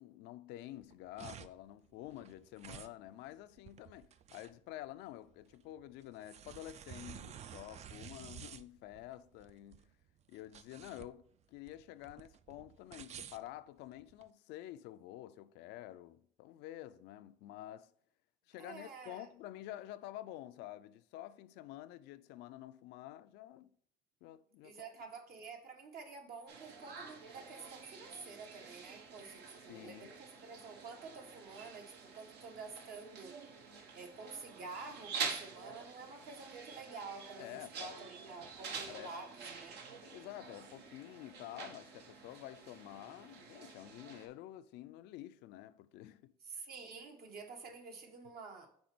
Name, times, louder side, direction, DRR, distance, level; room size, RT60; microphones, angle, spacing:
voice 1, 0.0-9.9 10.3-17.9 18.5-23.7 24.2-24.8 29.7-30.1 37.4-38.0 38.9-39.1 40.0-46.3, left 14 dB, 90° left, 0.4 m, -49 dB
sound 1, 0.7-14.3, right 9 dB, 40° right, 0.4 m, -52 dB
voice 2, 18.6-19.3 24.6-33.4 33.9-39.8 46.4-48.7, right 4 dB, 65° right, 1.4 m, -49 dB
sound 2, 26.5-44.3, right 5 dB, 80° right, 1.0 m, -47 dB
5.3 x 4.2 x 5.9 m
cardioid pair, 110°, 17 cm